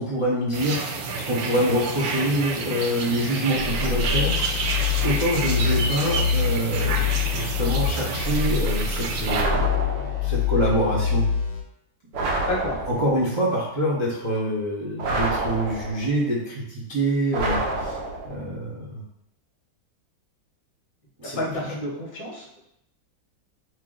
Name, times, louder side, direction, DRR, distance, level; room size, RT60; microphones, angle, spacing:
voice 1, 0.0-4.7 5.0-11.3 12.9-18.0 18.2-19.0 21.2-21.6, equal, 30° right, -8 dB, 0.5 m, -26 dB
sound 1, 0.5-9.4, right 4 dB, 85° right, 1.3 m, -29 dB
sound 2, 3.5-11.6, left 7 dB, 70° left, 1.1 m, -25 dB
sound 3, 9.3-10.3 12.1-13.2 15.0-16.2 17.3-18.4, right 2 dB, 65° right, 1.2 m, -28 dB
voice 2, 12.4-12.8 21.4-22.6, left 1 dB, 30° left, -4 dB, 0.9 m, -30 dB
3.1 x 2.8 x 3.8 m, 0.78 s
omnidirectional pair, 2.0 m